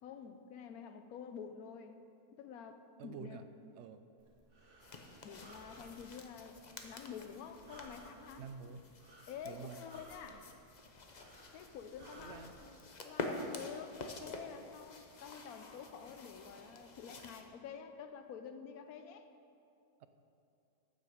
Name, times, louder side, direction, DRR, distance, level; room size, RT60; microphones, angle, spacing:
voice 1, 0.0-2.0 2.3-3.5 5.2-6.6 6.8-8.5 9.3-10.5 11.5-19.3, left 7 dB, 70° left, 8 dB, 1.2 m, -49 dB
voice 2, 3.0-3.4 3.7-4.0 8.4-8.9 9.4-9.8 12.2-12.5 20.0-20.1, right 6 dB, 65° right, 10 dB, 0.7 m, -48 dB
Breathing, 4.2-12.5, right 2 dB, 40° right, 1.3 m, -60 dB
sound 1, 4.8-17.4, left 2 dB, 40° left, 0.7 m, -48 dB
14.5 x 7.6 x 5.0 m, 2.6 s
omnidirectional pair, 1.7 m